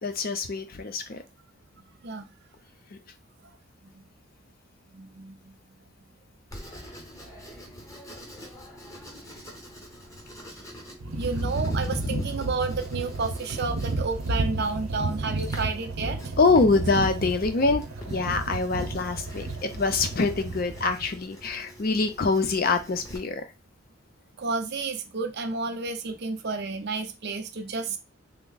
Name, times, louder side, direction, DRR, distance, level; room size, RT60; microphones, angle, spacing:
voice 1, 0.0-1.2 11.8-12.3 16.4-23.4, left 3 dB, 45° left, 8 dB, 0.5 m, -25 dB
voice 2, 4.9-5.5 11.2-16.3 24.4-28.0, right 4 dB, 50° right, 6 dB, 0.5 m, -31 dB
Writing, 6.5-23.2, equal, 15° left, 0.8 m, -45 dB
sound 1, 11.0-21.2, right 2 dB, 80° right, 0.8 m, -32 dB
3.4 x 2.0 x 3.9 m, 0.27 s
head